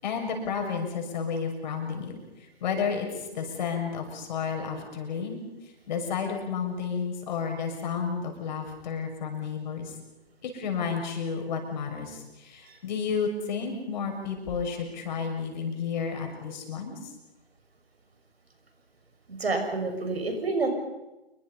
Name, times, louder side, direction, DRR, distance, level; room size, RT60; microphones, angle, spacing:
voice 1, 0.0-2.2 2.6-5.4 5.9-9.9 10.4-17.1, left 6 dB, 45° left, 3 dB, 6.7 m, -31 dB
voice 2, 19.3-20.7, right 3 dB, 75° right, 5 dB, 6.3 m, -28 dB
28.5 x 22.5 x 5.6 m, 1.0 s
figure-of-eight pair, 130°, 31 cm